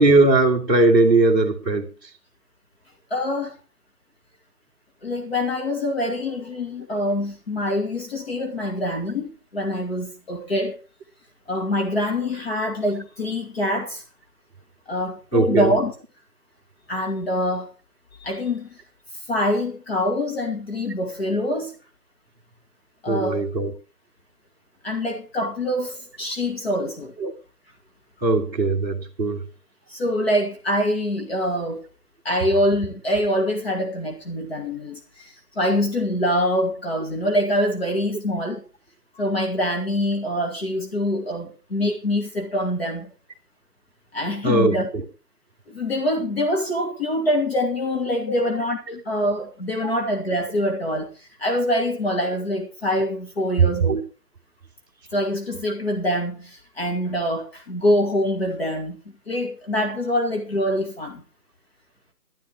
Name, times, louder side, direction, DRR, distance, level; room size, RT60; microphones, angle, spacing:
voice 1, 0.0-1.9 15.3-15.7 23.1-23.7 27.2-27.3 28.2-29.4 44.4-45.0 48.3-48.5 48.9-49.0 49.8-49.9 53.6-53.7 55.7-55.8, right 2 dB, 15° right, 1.8 m, -19 dB
voice 2, 3.1-3.6 5.0-10.8 11.5-14.0 14.9-15.9 16.9-17.7 18.2-18.8 19.3-21.7 23.0-23.4 24.8-27.1 29.9-31.8 32.2-38.6 39.1-43.1 44.1-44.9 45.7-54.0 55.1-59.0 59.3-61.2, left 1 dB, 40° left, 2.5 m, -25 dB
12.5 x 12.5 x 4.7 m
figure-of-eight pair, 170°, 49 cm